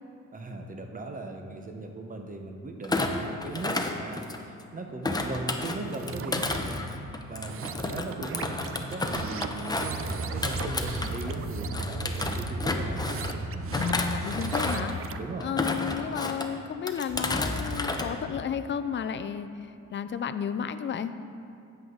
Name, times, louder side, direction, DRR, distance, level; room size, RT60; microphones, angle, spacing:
voice 1, 0.3-6.9 7.3-10.0 10.3-13.0 15.2-15.5, right 2 dB, 25° right, 4 dB, 1.1 m, -38 dB
Thump thud, 2.8-4.6 5.0-11.4 11.7-13.3 13.7-14.9 15.4-16.5 16.9-18.1 18.4-18.7, left 2 dB, 15° left, 0.8 m, -31 dB
sound 1, 5.8-6.6 7.3-15.3, right 8 dB, 45° right, 0.5 m, -40 dB
sound 2, 9.8-15.1, right 2 dB, 65° right, 1.1 m, -36 dB
voice 2, 13.8-14.9 15.4-19.5 19.9-21.1, left 7 dB, 40° left, 11 dB, 0.5 m, -32 dB
10.5 x 8.0 x 4.0 m, 2.6 s
cardioid pair, 90°, 30 cm